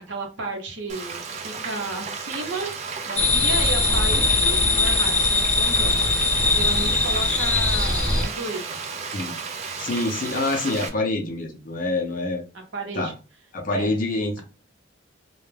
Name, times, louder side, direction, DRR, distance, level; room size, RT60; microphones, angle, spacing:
voice 1, 0.1-2.7 3.1-6.0 6.5-8.8 12.5-13.1 13.7-13.9, right 3 dB, 65° right, 0.8 m, -33 dB
Frying (food), 0.9-10.9, right 5 dB, 35° right, 0.3 m, -33 dB
sound 1, 3.2-8.3, left 3 dB, 5° left, 0.7 m, -21 dB
voice 2, 9.8-12.4 12.9-13.1 13.5-14.4, left 2 dB, 40° left, 0.5 m, -26 dB
2.2 x 2.1 x 3.2 m
head